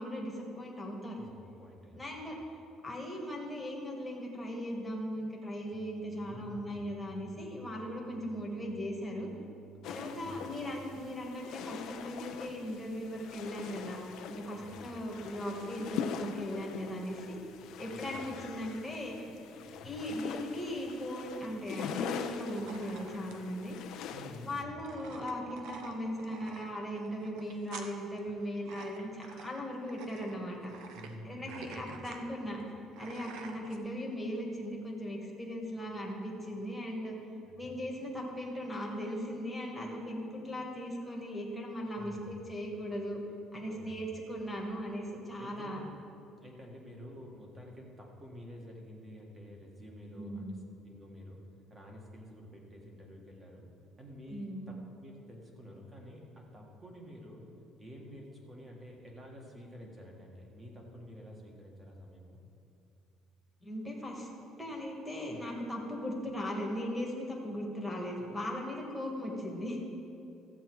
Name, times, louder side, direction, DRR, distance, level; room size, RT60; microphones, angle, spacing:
voice 1, 0.0-1.2 1.9-2.4 2.8-9.3 9.8-14.0 14.3-17.4 17.8-19.3 19.8-23.8 24.4-30.7 31.2-32.6 33.0-37.2 37.6-43.2 43.5-45.8 50.2-50.6 54.3-54.7 63.6-64.3 64.6-69.8, equal, 5° left, -2 dB, 1.6 m, -38 dB
voice 2, 1.2-2.1 6.3-6.9 10.1-10.3 14.5-14.9 17.9-18.3 19.7-19.9 24.1-25.0 30.9-31.9 37.4-37.7 41.9-42.3 43.6-44.0 45.4-45.8 46.4-51.4 51.7-53.6 54.0-57.4 57.8-62.4, equal, 20° right, 0 dB, 1.6 m, -50 dB
sound 1, 5.7-10.9, right 5 dB, 30° left, 1.1 m, -55 dB
sound 2, 9.8-24.6, left 7 dB, 65° left, 0.7 m, -43 dB
sound 3, 22.5-33.8, right 5 dB, 65° right, 0.9 m, -49 dB
14.0 x 8.1 x 4.7 m, 2.7 s
cardioid pair, 160°, 0 cm